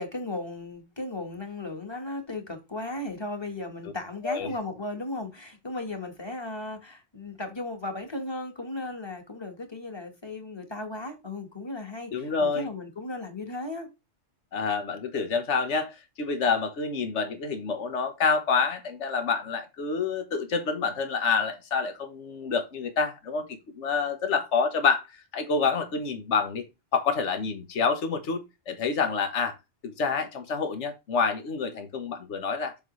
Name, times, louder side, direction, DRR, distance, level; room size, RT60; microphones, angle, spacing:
voice 1, 0.0-13.9, left 2 dB, 25° left, 1.4 m, -36 dB
voice 2, 12.1-12.7 14.5-26.7 26.9-29.5 29.8-32.7, left 5 dB, 85° left, 1.4 m, -28 dB
7.2 x 5.3 x 3.1 m
omnidirectional pair, 1.2 m